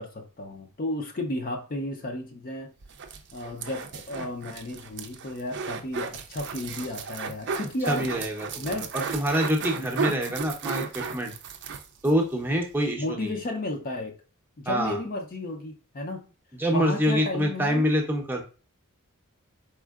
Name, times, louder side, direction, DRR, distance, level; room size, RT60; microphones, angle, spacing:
voice 1, 0.0-2.7 3.3-8.1 8.6-8.9 9.8-9.9 12.9-14.2 14.6-16.2 16.7-17.9, left 1 dB, 40° left, 3 dB, 0.6 m, -33 dB
sound 1, 2.8-12.2 12.5-12.6 12.8-12.9, right 5 dB, 50° right, 0.5 m, -35 dB
voice 2, 7.9-11.3 12.0-13.3 14.7-15.0 16.6-18.4, equal, 10° right, 1 dB, 0.7 m, -26 dB
4.4 x 3.6 x 2.4 m, 0.35 s
head